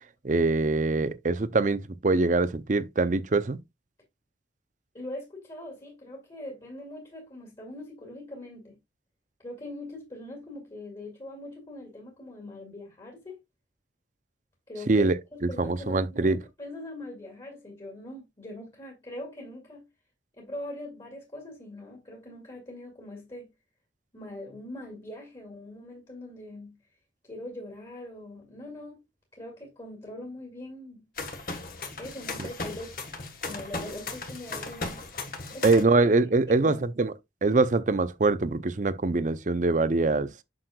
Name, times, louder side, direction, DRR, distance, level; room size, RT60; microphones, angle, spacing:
voice 1, 0.2-3.6 14.9-16.4 32.4-32.5 35.6-37.1 37.4-40.3, right 3 dB, 40° right, 0.6 m, -24 dB
voice 2, 4.9-8.8 9.4-13.4 14.7-19.9 20.4-23.5 24.1-26.8 27.2-29.0 29.3-31.0 32.0-33.2 33.4-35.1 35.5-36.0 36.5-36.8, left 1 dB, 25° left, 2.1 m, -42 dB
sound 1, 31.2-35.8, left 3 dB, 50° left, 1.4 m, -36 dB
7.7 x 6.3 x 2.3 m
head